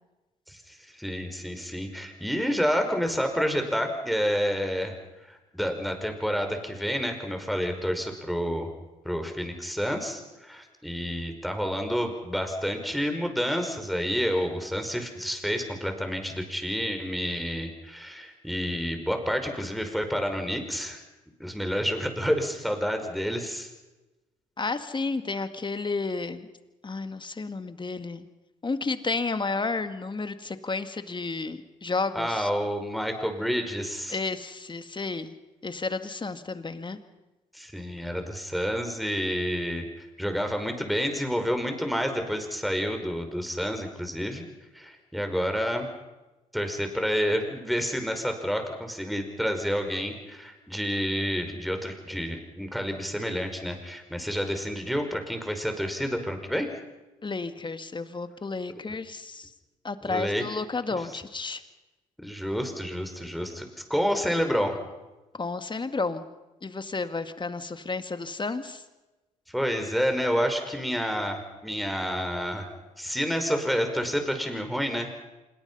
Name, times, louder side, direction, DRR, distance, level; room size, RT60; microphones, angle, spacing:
voice 1, 0.5-5.0 5.2-8.7 9.0-21.0 21.4-23.7 32.1-34.2 37.5-44.4 44.7-45.9 46.5-56.7 60.1-60.4 62.2-64.8 69.5-75.1, equal, ahead, 5 dB, 5.4 m, -29 dB
voice 2, 24.6-26.5 26.8-28.3 28.6-32.5 34.1-35.3 35.6-37.0 57.2-59.5 59.8-61.6 65.3-66.2 66.6-68.8, left 3 dB, 25° left, 10 dB, 2.0 m, -32 dB
26.5 x 21.5 x 5.6 m, 1.1 s
hypercardioid pair, 50°, 17 cm